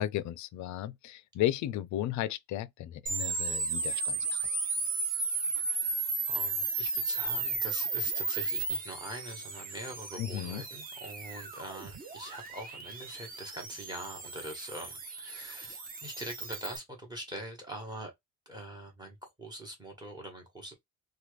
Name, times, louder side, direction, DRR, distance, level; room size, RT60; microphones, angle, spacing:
voice 1, 0.0-4.5 10.2-10.6, left 13 dB, 65° left, 0.4 m, -34 dB
sound 1, 3.1-16.8, right 3 dB, 30° right, 0.7 m, -34 dB
voice 2, 5.7-18.1 18.4-20.7, right 1 dB, 15° right, 1.2 m, -44 dB
3.0 x 2.3 x 3.1 m
cardioid pair, 150°, 32 cm